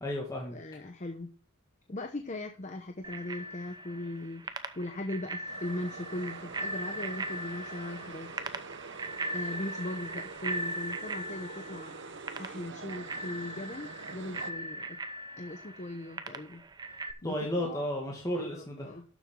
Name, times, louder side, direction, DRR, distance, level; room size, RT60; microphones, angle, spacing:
voice 1, 0.0-0.6 17.2-18.9, left 1 dB, 15° left, -2 dB, 1.9 m, -33 dB
voice 2, 0.5-1.3 1.9-8.3 9.3-11.9 12.4-15.0 15.4-16.6 17.2-17.3 17.6-17.8 18.3-19.0, left 1 dB, 35° left, 5 dB, 0.8 m, -39 dB
Bicycle bell, 3.0-17.1, right 2 dB, 20° right, 0.7 m, -39 dB
sound 1, 5.5-14.5, right 4 dB, 55° right, 0.9 m, -45 dB
12.0 x 7.2 x 3.7 m, 0.42 s
head